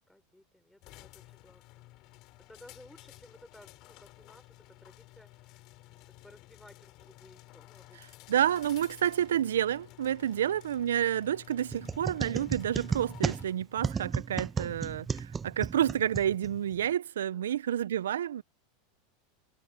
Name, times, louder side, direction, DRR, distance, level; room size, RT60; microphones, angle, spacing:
voice 1, 0.1-1.9 2.4-5.6 5.9-8.3 17.3-17.6, left 1 dB, 5° left, 6.1 m, -57 dB
sound 1, 0.8-15.2, left 20 dB, 55° left, 7.1 m, -53 dB
voice 2, 7.9-18.4, right 10 dB, 85° right, 0.4 m, -29 dB
sound 2, 11.7-16.8, right 6 dB, 20° right, 0.8 m, -34 dB
hypercardioid pair, 100°, 0 cm